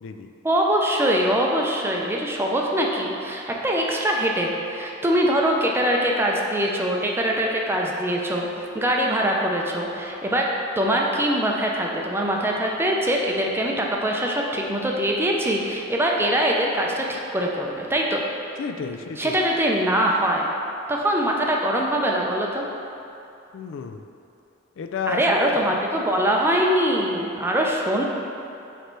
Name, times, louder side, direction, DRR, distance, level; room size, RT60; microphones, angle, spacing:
voice 1, 0.4-10.5 10.8-18.2 19.2-20.5 20.9-22.6 25.1-28.0, equal, 10° right, -1 dB, 0.5 m, -23 dB
voice 2, 18.6-19.3 23.5-24.0 24.8-25.6, left 5 dB, 65° left, 6 dB, 0.3 m, -31 dB
6.6 x 3.2 x 4.5 m, 2.7 s
head